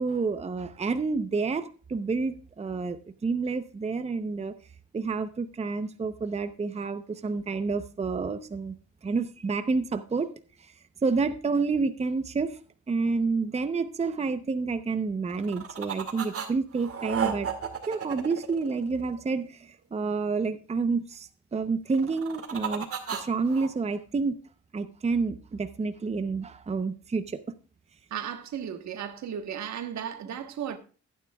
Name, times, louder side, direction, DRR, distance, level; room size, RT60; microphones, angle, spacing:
voice 1, 0.0-4.5 4.9-8.7 9.0-10.3 10.6-10.7 11.0-12.6 12.9-17.5 17.9-24.4 24.7-27.4, right 4 dB, 20° right, 0.7 m, -29 dB
sound 1, 15.3-16.5 16.7-19.2 21.9-23.7, right 7 dB, 50° right, 2.2 m, -33 dB
voice 2, 28.1-30.8, right 9 dB, 65° right, 1.4 m, -35 dB
15.0 x 9.4 x 2.3 m
cardioid pair, 90°, 30 cm